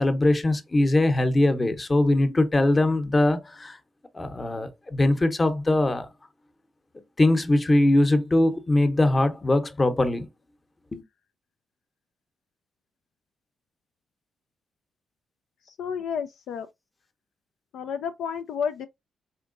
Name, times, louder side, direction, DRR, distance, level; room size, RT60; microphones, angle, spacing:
voice 1, 0.0-3.8 4.1-6.1 7.2-10.3 10.9-11.0, left 2 dB, 30° left, 0.9 m, -21 dB
voice 2, 15.7-16.7 17.7-18.9, left 7 dB, 75° left, 0.3 m, -31 dB
4.3 x 3.6 x 2.5 m
hypercardioid pair, 45°, 0 cm